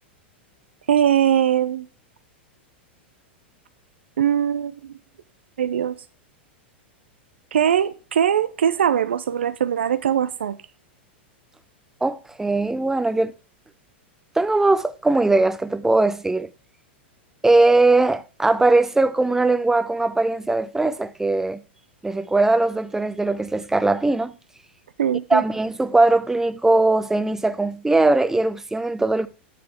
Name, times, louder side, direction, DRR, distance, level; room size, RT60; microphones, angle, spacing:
voice 1, 0.9-1.8 4.2-4.7 5.6-5.9 7.5-10.6 25.0-25.4, right 9 dB, 80° right, 0.4 m, -21 dB
voice 2, 12.0-13.3 14.4-16.5 17.4-21.6 22.0-24.3 25.3-29.3, right 2 dB, 5° right, 0.6 m, -20 dB
9.5 x 6.8 x 3.5 m
hypercardioid pair, 100°, 6 cm